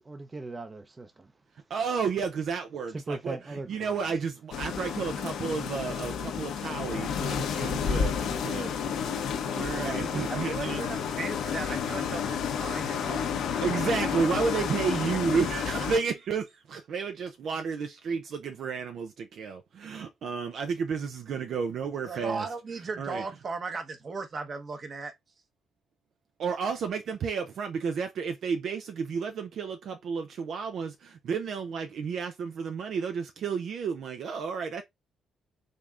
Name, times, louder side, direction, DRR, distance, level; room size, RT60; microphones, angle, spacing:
voice 1, 0.0-1.3 2.9-4.0 8.8-8.9 9.5-10.3, right 2 dB, 25° right, 0.7 m, -41 dB
voice 2, 1.7-8.7 9.5-10.8 13.6-22.5 23.0-23.2 26.4-34.8, right 5 dB, 65° right, 0.5 m, -32 dB
sound 1, 4.5-16.0, left 7 dB, 80° left, 1.0 m, -31 dB
voice 3, 10.3-13.3 22.1-25.1, right 4 dB, 45° right, 1.1 m, -37 dB
5.2 x 3.6 x 2.4 m
cardioid pair, 90°, 0 cm